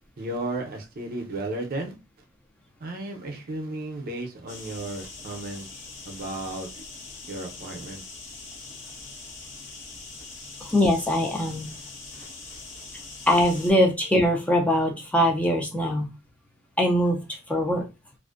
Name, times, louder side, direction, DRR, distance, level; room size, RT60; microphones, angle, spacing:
voice 1, 0.2-2.0 2.8-5.7 6.0-6.7 7.3-8.0 12.1-12.6, right 2 dB, 50° right, 0.6 m, -34 dB
sound 1, 4.5-13.7, left 3 dB, 70° left, 0.9 m, -42 dB
voice 2, 10.6-11.7 13.3-16.1 16.8-17.9, equal, 5° left, 0.4 m, -22 dB
2.4 x 2.1 x 2.4 m
head